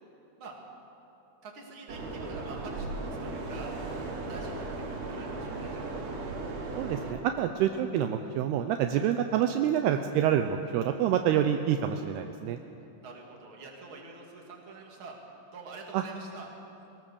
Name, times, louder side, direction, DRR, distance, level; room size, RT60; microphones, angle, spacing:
voice 1, 1.4-3.7 4.2-4.6 5.1-6.2 13.0-15.2 15.5-16.5, right 3 dB, 35° right, -1 dB, 2.5 m, -46 dB
sound 1, 1.9-7.1, right 2 dB, 60° right, 4.4 m, -36 dB
voice 2, 6.7-12.6 15.9-16.0, right 10 dB, 85° right, 6 dB, 2.3 m, -27 dB
21.0 x 18.5 x 7.1 m, 2.9 s
omnidirectional pair, 5.4 m